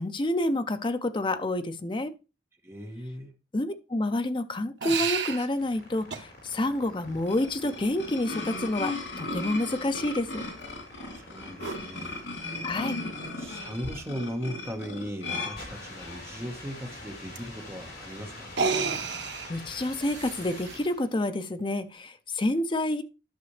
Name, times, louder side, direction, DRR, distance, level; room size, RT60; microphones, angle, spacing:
voice 1, 0.0-2.1 3.5-10.4 12.6-13.0 18.9-23.0, left 1 dB, 25° left, 0.6 m, -29 dB
voice 2, 2.6-3.3 10.9-12.6 13.4-18.5, equal, 15° right, 1.2 m, -38 dB
sound 1, 4.8-5.5 6.1-6.2 8.3-8.5 11.6-11.8 13.3-13.4 13.8-13.9 14.2-14.3 17.4-17.5 18.4-20.8, right 5 dB, 80° right, 1.0 m, -31 dB
sound 2, 5.4-21.2, left 2 dB, 60° left, 3.9 m, -46 dB
sound 3, 7.0-16.4, left 2 dB, 85° left, 3.0 m, -37 dB
11.5 x 6.0 x 3.2 m
head